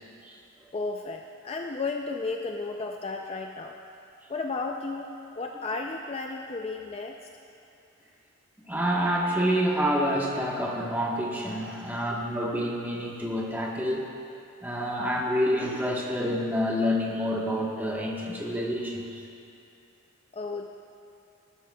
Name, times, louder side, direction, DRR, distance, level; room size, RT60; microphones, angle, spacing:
voice 1, 0.7-3.8 4.3-5.1 5.3-7.2 20.3-20.7, left 3 dB, 25° left, 2 dB, 0.4 m, -33 dB
voice 2, 8.7-14.1 14.6-19.2, equal, 10° right, -3 dB, 1.2 m, -28 dB
19.0 x 12.5 x 2.3 m, 2.7 s
head